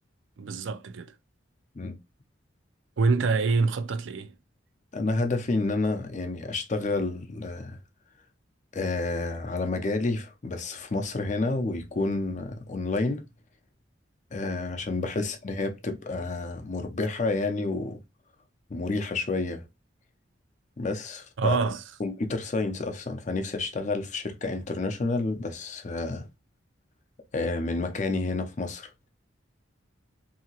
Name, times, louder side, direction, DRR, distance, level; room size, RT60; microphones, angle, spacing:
voice 1, 0.4-1.2 3.0-4.3 21.4-21.8, right 4 dB, 75° right, 0.4 m, -26 dB
voice 2, 4.9-7.8 8.7-13.3 14.3-18.0 18.7-19.6 20.8-21.6 22.0-26.3 27.3-28.9, left 3 dB, 40° left, 0.5 m, -29 dB
2.8 x 2.8 x 2.8 m
head